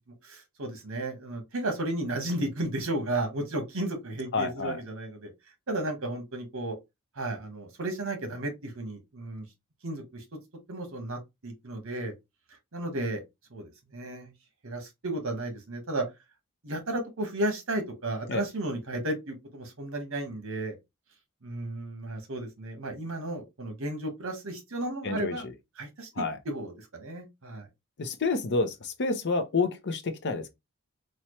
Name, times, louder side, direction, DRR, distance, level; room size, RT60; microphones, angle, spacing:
voice 1, 0.2-5.3 5.7-6.8 7.2-9.4 9.8-10.2 10.7-12.1 12.7-13.2 13.5-14.3 14.6-16.0 16.6-20.8 21.4-25.4 25.8-27.7, right 1 dB, 65° right, 1.2 m, -33 dB
voice 2, 4.3-4.8 18.3-18.5 25.0-25.5 26.2-26.4 28.0-30.5, left 3 dB, 55° left, 0.6 m, -29 dB
4.2 x 2.3 x 3.0 m
head